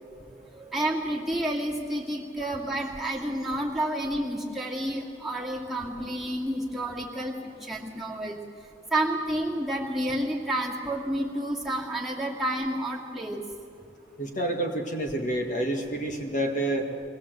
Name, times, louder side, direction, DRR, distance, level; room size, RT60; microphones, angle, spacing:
voice 1, 0.5-7.3 7.6-8.4 8.9-13.4, right 1 dB, ahead, -4 dB, 2.4 m, -30 dB
voice 2, 14.2-16.8, right 1 dB, 45° left, 2 dB, 1.6 m, -28 dB
23.0 x 18.5 x 7.8 m, 2.6 s
head